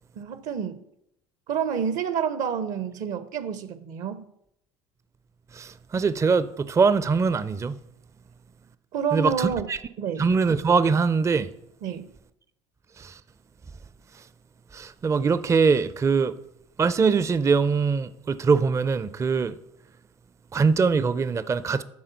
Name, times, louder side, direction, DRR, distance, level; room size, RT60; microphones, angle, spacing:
voice 1, 0.2-0.8 1.5-4.3 8.9-9.7 10.0-10.3 11.8-12.1, right 7 dB, 60° right, 0.7 m, -28 dB
voice 2, 5.5-7.8 9.1-9.8 10.2-11.5 13.0-13.2 14.1-14.3 14.7-16.4 16.8-19.6 20.5-21.8, right 5 dB, 20° right, 0.4 m, -23 dB
8.7 x 3.7 x 6.8 m
hypercardioid pair, 75°, 15 cm